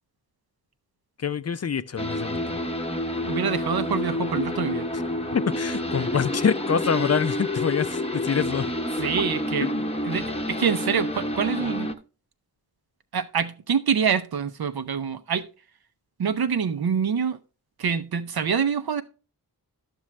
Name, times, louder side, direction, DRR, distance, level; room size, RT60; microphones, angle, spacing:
voice 1, 1.2-2.6 5.3-8.6 9.6-9.9, left 6 dB, 45° left, 0.5 m, -26 dB
sound 1, 2.0-11.9, left 1 dB, 15° left, 0.8 m, -29 dB
voice 2, 3.2-4.9 9.0-9.7 10.0-11.9 13.1-15.5 16.2-17.4 17.8-19.0, right 6 dB, 75° right, 0.7 m, -26 dB
11.0 x 6.1 x 3.2 m
cardioid pair, 50°, 38 cm